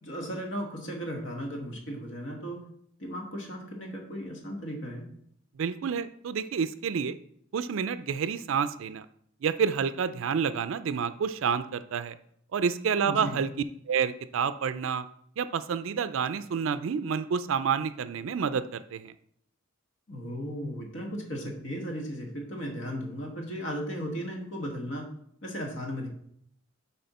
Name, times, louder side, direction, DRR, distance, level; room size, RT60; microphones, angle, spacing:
voice 1, 0.0-2.7 3.0-5.1 13.0-13.5 20.1-25.1 25.4-26.1, equal, 65° left, 1 dB, 1.4 m, -36 dB
voice 2, 5.6-7.2 7.5-9.1 9.4-12.2 12.5-13.5 13.9-15.0 15.4-19.1, right 6 dB, 75° right, 12 dB, 0.4 m, -29 dB
7.7 x 4.3 x 4.1 m, 0.68 s
head